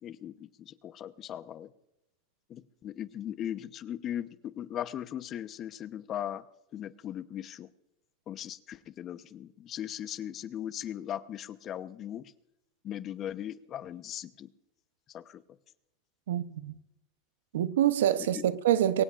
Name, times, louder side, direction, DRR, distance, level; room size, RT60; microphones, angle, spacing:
voice 1, 0.0-1.7 2.5-6.4 6.7-7.7 8.3-12.3 12.8-14.5 15.1-15.4 18.3-18.5, left 10 dB, 40° left, 0.9 m, -38 dB
voice 2, 16.3-16.7 17.5-19.0, right 11 dB, 85° right, 0.8 m, -26 dB
23.0 x 18.5 x 2.5 m
hypercardioid pair, 110°, 0 cm